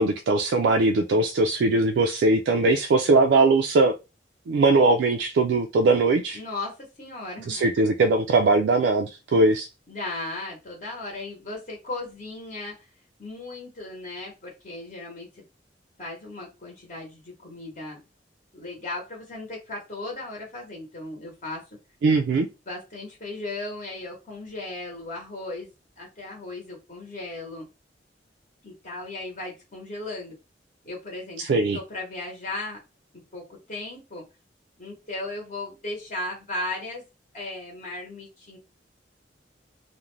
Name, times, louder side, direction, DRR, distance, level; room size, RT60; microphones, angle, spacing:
voice 1, 0.0-3.9 4.5-6.4 7.5-9.7 22.0-22.5 31.4-31.8, right 3 dB, 75° right, 0.3 m, -20 dB
voice 2, 6.3-7.8 9.9-12.9 13.2-15.4 16.0-18.0 18.5-21.6 22.7-27.7 28.6-30.3 30.8-31.4 31.7-32.8 33.3-34.2 34.8-37.0 37.3-38.6, left 2 dB, 45° left, 0.8 m, -36 dB
2.5 x 2.1 x 3.0 m
head